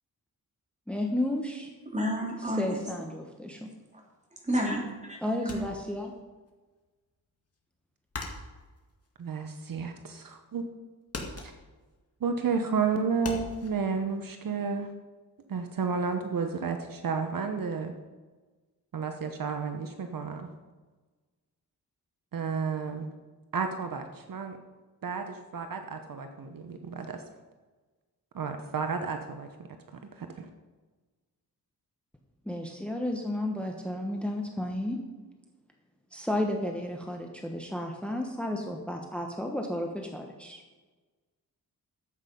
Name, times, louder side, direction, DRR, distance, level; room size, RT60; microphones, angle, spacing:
voice 1, 0.9-1.7 2.5-3.7 5.2-6.1 32.5-35.0 36.1-40.6, left 1 dB, 5° left, 2 dB, 1.1 m, -32 dB
voice 2, 1.9-2.8 4.4-5.6, equal, 20° right, -1 dB, 3.0 m, -31 dB
sound 1, 5.5-6.5 6.8-10.1 10.4-10.8 11.1-13.7, left 3 dB, 40° left, 2.1 m, -41 dB
voice 3, 9.2-10.7 12.2-14.9 15.5-17.9 18.9-20.5 22.3-23.1 23.5-24.6 25.0-27.2 28.3-29.5 29.9-30.5, right 5 dB, 60° right, 6 dB, 1.0 m, -32 dB
12.0 x 8.2 x 5.3 m, 1.3 s
wide cardioid pair, 110°, 37 cm